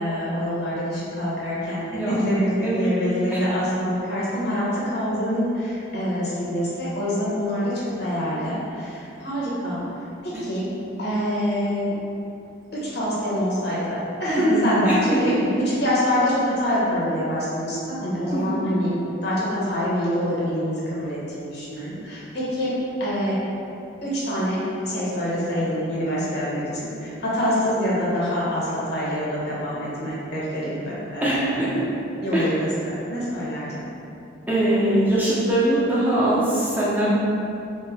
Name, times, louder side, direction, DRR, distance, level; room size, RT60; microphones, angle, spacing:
voice 1, 0.0-9.8 10.2-10.7 11.0-12.0 12.7-15.3 15.8-18.9 19.2-22.7 23.0-23.4 24.0-31.8 32.2-33.8, equal, 60° left, -8 dB, 0.9 m, -25 dB
voice 2, 1.9-2.9 3.3-3.4 14.3-15.3 18.3-18.6 31.2-31.7 32.3-32.5 34.5-37.1, right 1 dB, 10° right, -9 dB, 0.4 m, -22 dB
3.3 x 2.1 x 3.4 m, 2.7 s
head